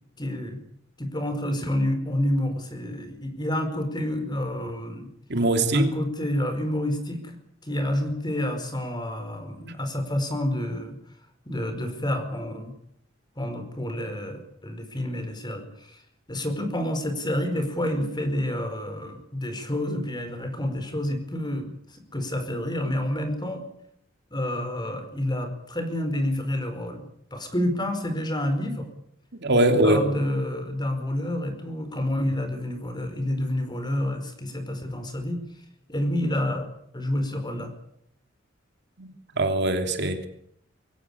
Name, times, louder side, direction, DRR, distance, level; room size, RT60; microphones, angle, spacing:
voice 1, 0.2-0.6 1.0-5.1 5.7-11.0 11.5-12.7 13.4-16.0 16.3-23.6 24.3-27.0 27.3-28.9 29.8-35.4 35.9-36.7 36.9-37.7, left 1 dB, 20° left, 8 dB, 4.8 m, -29 dB
voice 2, 5.3-5.9 29.3-30.0 39.0-40.3, right 1 dB, 60° right, 6 dB, 3.0 m, -22 dB
23.5 x 16.5 x 9.8 m, 0.71 s
head